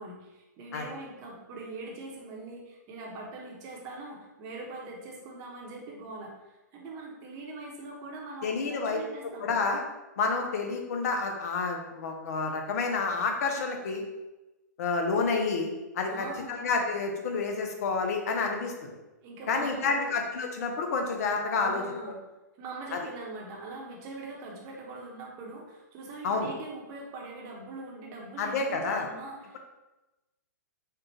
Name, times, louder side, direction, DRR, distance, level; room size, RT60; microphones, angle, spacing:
voice 1, 0.0-9.5 16.1-16.6 19.2-20.1 21.6-22.2 22.6-29.6, right 2 dB, 35° right, -2 dB, 1.0 m, -42 dB
voice 2, 8.4-9.0 9.4-9.8 10.2-14.0 14.8-15.7 15.9-18.9 19.5-21.8 22.9-23.0 26.2-26.5 28.4-29.1, left 4 dB, 60° left, 3 dB, 0.7 m, -29 dB
4.4 x 2.4 x 3.2 m, 1.0 s
hypercardioid pair, 125°, 10 cm